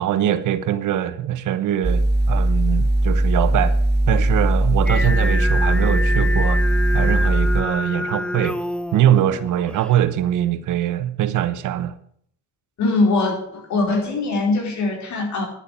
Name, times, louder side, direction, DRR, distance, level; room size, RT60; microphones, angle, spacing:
voice 1, 0.0-3.8 4.1-6.6 6.9-8.6 8.9-11.9, right 11 dB, 80° right, 1.1 m, -22 dB
sound 1, 1.8-7.6, right 1 dB, 35° right, 1.4 m, -19 dB
Singing, 4.9-10.0, left 1 dB, 5° left, 0.6 m, -27 dB
voice 2, 12.8-15.5, left 3 dB, 70° left, 4.7 m, -21 dB
10.5 x 8.2 x 8.5 m
cardioid pair, 90°, 30 cm